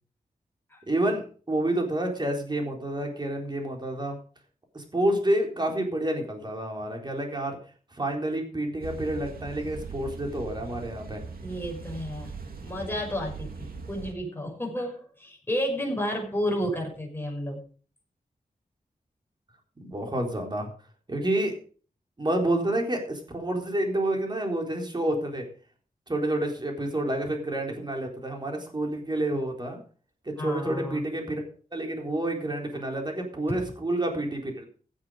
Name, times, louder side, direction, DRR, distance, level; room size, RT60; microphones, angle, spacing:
voice 1, 0.9-4.2 4.7-7.6 7.9-11.2 19.8-20.7 21.1-21.5 22.2-25.4 26.1-29.8 30.3-31.4 31.7-34.7, right 1 dB, 30° right, 2 dB, 4.1 m, -29 dB
sound 1, 8.8-14.1, right 4 dB, 85° right, 2.5 m, -40 dB
voice 2, 11.4-17.6 30.4-31.0 33.5-33.7, equal, 15° left, 0 dB, 6.4 m, -32 dB
16.5 x 8.6 x 5.1 m, 0.42 s
wide cardioid pair, 115°, 15 cm